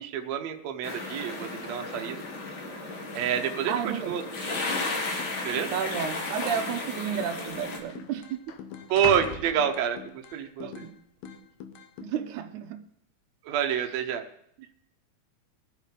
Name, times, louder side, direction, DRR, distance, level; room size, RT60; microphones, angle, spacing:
voice 1, 0.0-2.2 3.1-3.7 4.0-4.2 5.4-5.7 8.9-10.7 13.5-14.2, right 9 dB, 70° right, 5 dB, 2.0 m, -28 dB
sound 1, 0.8-7.8, left 3 dB, 45° left, 2.1 m, -34 dB
sound 2, 1.9-2.3 3.0-3.1 3.9-4.4 4.7-4.8 5.6-5.8 6.8-6.9 7.1-10.3 10.8-11.3, left 7 dB, 70° left, 1.7 m, -42 dB
voice 2, 3.7-4.1 4.5-4.7 5.7-8.6 10.6-11.0 12.0-12.8 14.6-14.7, right 8 dB, 85° right, 7 dB, 2.2 m, -32 dB
sound 3, 4.2-4.9 5.2-6.9 7.2-8.9 9.2-10.9 11.2-12.1, left 8 dB, 85° left, 2.4 m, -44 dB
21.5 x 7.5 x 3.8 m, 0.70 s
omnidirectional pair, 3.5 m